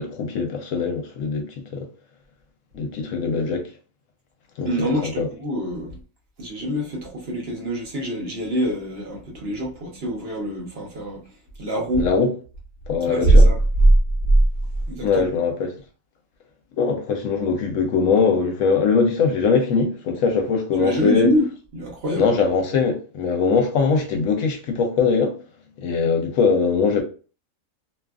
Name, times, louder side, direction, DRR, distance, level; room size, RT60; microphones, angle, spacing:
voice 1, 0.0-1.5 1.7-1.9 2.7-3.7 4.6-4.7 5.0-5.3 12.0-12.3 12.9-13.5 15.0-15.8 16.8-21.3 22.1-25.4 25.8-27.0, left 5 dB, 75° left, 1.0 m, -21 dB
voice 2, 4.6-6.0 6.4-11.2 11.6-12.0 13.1-13.6 14.9-15.3 20.8-21.4 21.7-22.3, right 1 dB, 55° right, 1.0 m, -22 dB
2.7 x 2.4 x 2.3 m
omnidirectional pair, 1.4 m